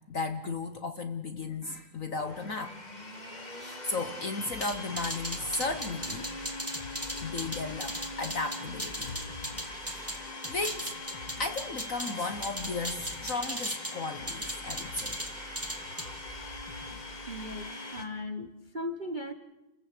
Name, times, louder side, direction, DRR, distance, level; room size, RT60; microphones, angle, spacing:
voice 1, 0.1-2.8 3.6-6.3 6.8-6.9 7.1-9.3 9.8-10.1 10.5-10.9 11.4-15.1 15.9-16.1, left 3 dB, 50° left, 9 dB, 1.1 m, -35 dB
Domestic sounds home sounds, 2.2-18.1, left 2 dB, 20° left, 2.0 m, -42 dB
sound 1, 4.0-17.8, left 2 dB, 75° left, 3.1 m, -50 dB
sound 2, 4.6-10.2 10.4-12.1 12.4-13.9 14.3-15.3 15.5-16.0, right 1 dB, 5° right, 2.3 m, -36 dB
voice 2, 17.3-19.3, left 1 dB, 30° right, 8 dB, 1.0 m, -37 dB
30.0 x 15.0 x 8.3 m, 0.99 s
omnidirectional pair, 2.4 m